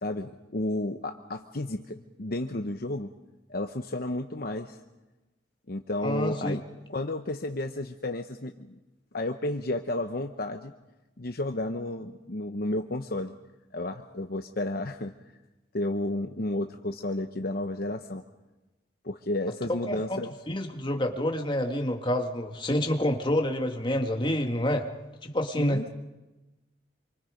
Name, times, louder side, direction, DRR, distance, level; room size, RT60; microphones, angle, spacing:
voice 1, 0.0-3.1 3.5-4.8 5.7-6.6 6.9-8.5 9.1-10.7 11.2-13.3 13.7-15.1 15.7-18.2 19.0-20.3 25.6-25.9, left 1 dB, 55° left, 5 dB, 1.0 m, -32 dB
voice 2, 6.0-6.6 19.9-20.2 20.5-24.9 25.2-25.8, left 1 dB, 25° left, 3 dB, 2.2 m, -28 dB
27.5 x 24.0 x 5.2 m, 1.1 s
head